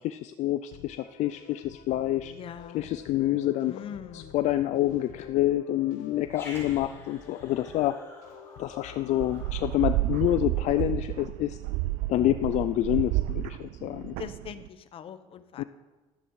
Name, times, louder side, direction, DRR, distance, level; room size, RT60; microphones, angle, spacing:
voice 1, 0.0-2.3 2.7-3.8 4.1-7.9 8.6-11.6 12.1-14.2 15.6-15.7, left 14 dB, 65° left, 11 dB, 0.4 m, -27 dB
sound 1, 0.7-10.8, left 8 dB, 85° left, 0.8 m, -49 dB
voice 2, 2.3-2.9 3.7-4.3 14.2-15.6, left 8 dB, 45° left, 12 dB, 0.8 m, -42 dB
Growling, 6.3-10.9, left 2 dB, 20° left, 4.6 m, -49 dB
sound 2, 9.2-14.7, right 17 dB, 85° right, 0.4 m, -31 dB
12.0 x 9.6 x 4.8 m, 1.2 s
cardioid pair, 125°, 13 cm